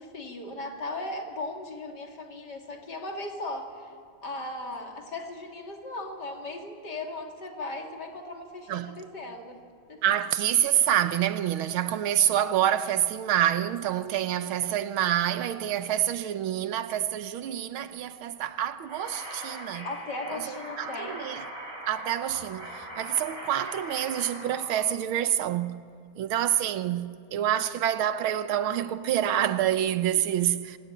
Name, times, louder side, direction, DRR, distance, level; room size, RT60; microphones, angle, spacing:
voice 1, 0.0-3.9 4.2-9.6 9.9-10.0 19.8-21.3, left 2 dB, 55° left, 3.4 m, -37 dB
voice 2, 8.7-9.0 10.0-19.9 20.3-20.4 20.8-20.9 21.2-21.4 21.9-25.9 26.2-30.8, right 11 dB, 90° right, 1.8 m, -27 dB
sound 1, 18.9-24.8, equal, 55° right, 6.1 m, -40 dB
26.5 x 18.5 x 9.0 m
omnidirectional pair, 2.2 m